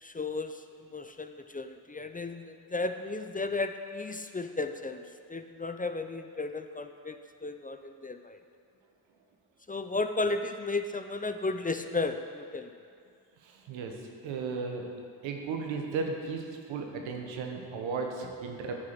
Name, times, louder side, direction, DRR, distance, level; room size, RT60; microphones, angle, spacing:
voice 1, 0.0-8.4 9.7-12.7, left 3 dB, 20° left, 7 dB, 0.5 m, -34 dB
voice 2, 13.4-14.9 15.2-18.8, right 4 dB, 85° right, 2 dB, 1.1 m, -35 dB
10.0 x 4.8 x 5.9 m, 2.3 s
supercardioid pair, 45°, 45 cm